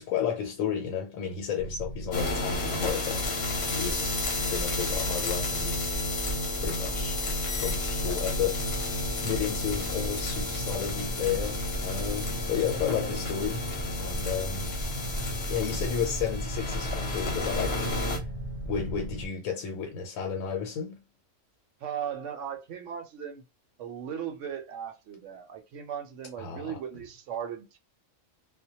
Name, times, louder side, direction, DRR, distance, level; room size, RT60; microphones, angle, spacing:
voice 1, 0.0-3.4 3.7-5.8 6.6-7.2 7.5-13.6 14.0-14.7 15.5-18.3 18.6-21.0 26.4-26.8, left 8 dB, 80° left, 1.0 m, -32 dB
sound 1, 1.6-19.3, equal, 40° right, 0.5 m, -37 dB
sound 2, 2.1-18.2, left 2 dB, 55° left, 0.8 m, -32 dB
voice 2, 21.8-23.4 23.8-27.8, right 8 dB, 70° right, 0.9 m, -37 dB
2.2 x 2.1 x 2.8 m
omnidirectional pair, 1.4 m